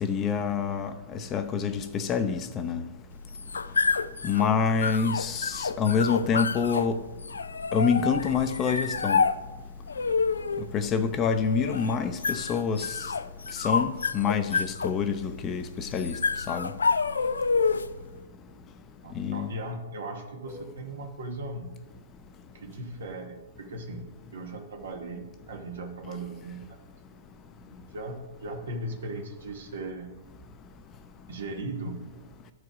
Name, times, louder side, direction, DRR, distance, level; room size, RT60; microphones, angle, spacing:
voice 1, 0.0-2.8 4.2-7.0 7.7-9.2 10.7-13.0 13.5-16.1 16.5-16.7 19.2-19.5, left 6 dB, 25° left, 0.6 m, -27 dB
sound 1, 3.1-18.0, left 5 dB, 90° left, 0.4 m, -29 dB
voice 2, 19.0-21.7 22.5-24.1 24.3-26.8 27.7-30.1 31.3-32.0, right 2 dB, 75° right, 1.1 m, -38 dB
12.0 x 4.9 x 5.0 m
hypercardioid pair, 120°, 0 cm